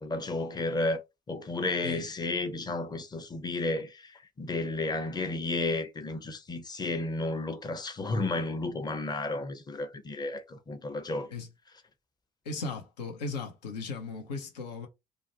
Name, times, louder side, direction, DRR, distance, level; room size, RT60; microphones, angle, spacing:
voice 1, 0.0-1.0 1.3-11.3, left 2 dB, 20° left, 0.6 m, -32 dB
voice 2, 12.4-14.9, left 4 dB, 80° left, 0.6 m, -37 dB
2.4 x 2.1 x 2.6 m
figure-of-eight pair, 50°, 21 cm